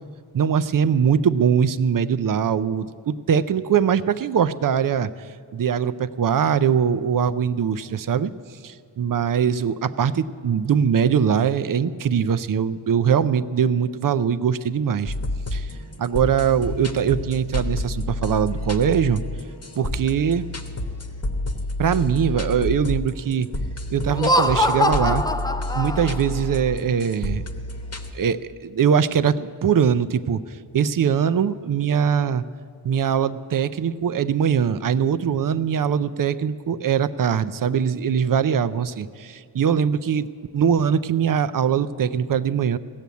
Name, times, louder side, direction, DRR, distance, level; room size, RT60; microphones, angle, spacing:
voice 1, 0.3-5.1 5.5-8.3 8.6-15.1 15.5-15.7 16.0-19.2 19.8-20.5 21.8-23.5 23.9-25.2 25.7-27.4 28.1-30.4 30.7-32.4 32.8-42.8, right 7 dB, 45° right, 14 dB, 0.6 m, -22 dB
sound 1, 15.1-28.1, left 1 dB, 30° left, 1.2 m, -30 dB
Laughter, 24.1-26.4, left 1 dB, 10° left, 0.4 m, -22 dB
16.0 x 7.0 x 9.3 m, 2.1 s
cardioid pair, 65°, 48 cm